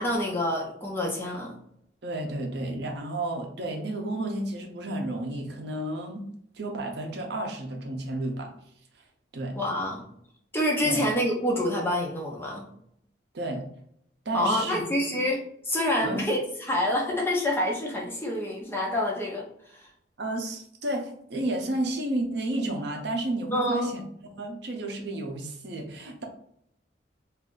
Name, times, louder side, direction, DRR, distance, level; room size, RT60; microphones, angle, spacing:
voice 1, 0.0-1.5 9.6-10.0 10.5-12.7 14.3-15.4 15.6-19.4 19.7-19.8 23.5-23.9, left 1 dB, 10° left, -2 dB, 0.6 m, -27 dB
voice 2, 2.0-6.2 6.5-8.5 9.3-9.6 10.8-11.0 13.3-13.6 14.3-14.8 16.0-16.2 20.2-24.0 24.4-26.2, right 1 dB, 60° right, 3 dB, 0.6 m, -31 dB
2.6 x 2.4 x 3.8 m, 0.70 s
head